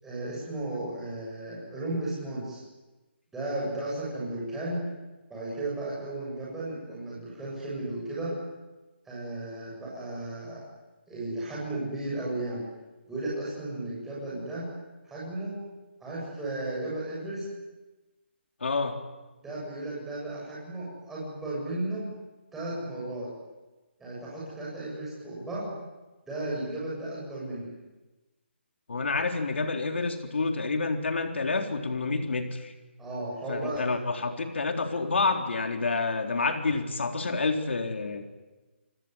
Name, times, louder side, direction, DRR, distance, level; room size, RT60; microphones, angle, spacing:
voice 1, 0.0-2.6 3.3-4.8 5.3-8.3 9.1-10.6 11.1-12.6 13.1-14.6 15.0-15.5 16.0-17.4 19.4-22.0 22.5-23.3 24.0-25.7 26.3-27.7 33.0-33.8, right 2 dB, 5° right, -7 dB, 7.9 m, -34 dB
voice 2, 18.6-19.0 28.9-32.7 33.5-38.3, left 3 dB, 75° left, 5 dB, 3.8 m, -28 dB
28.0 x 20.0 x 9.9 m, 1.2 s
hypercardioid pair, 170°, 6 cm